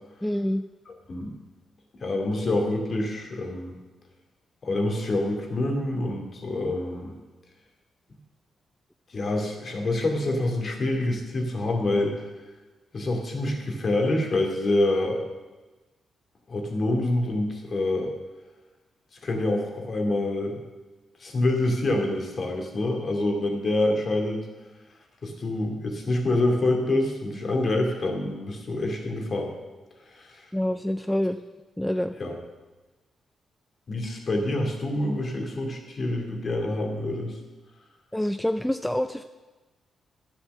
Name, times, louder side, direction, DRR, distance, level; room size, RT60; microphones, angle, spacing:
voice 1, 0.2-0.6 30.5-31.4 31.8-32.2 38.1-39.2, left 1 dB, 5° left, 9 dB, 0.4 m, -26 dB
voice 2, 0.9-1.4 2.0-3.8 4.6-7.2 9.1-12.3 12.9-15.2 16.5-18.1 19.2-20.6 21.2-24.5 25.2-29.5 30.1-30.5 32.2-32.3 33.9-37.4, left 2 dB, 45° left, 2 dB, 2.6 m, -26 dB
11.5 x 7.5 x 6.7 m, 1.2 s
cardioid pair, 95°, 0 cm